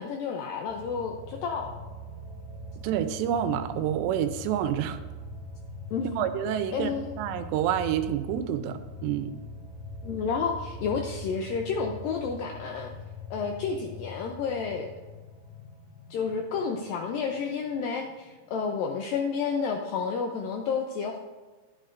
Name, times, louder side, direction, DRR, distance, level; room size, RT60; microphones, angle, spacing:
voice 1, 0.0-1.8 5.9-6.3 6.7-7.2 10.0-12.9 13.3-14.9 16.1-21.2, left 5 dB, 85° left, 3 dB, 2.0 m, -30 dB
sound 1, 0.7-18.2 18.6-18.7, left 1 dB, 65° left, 2.9 m, -42 dB
voice 2, 2.8-5.0 6.2-9.3, right 10 dB, 90° right, 10 dB, 2.9 m, -28 dB
11.5 x 11.5 x 2.6 m, 1.3 s
omnidirectional pair, 4.9 m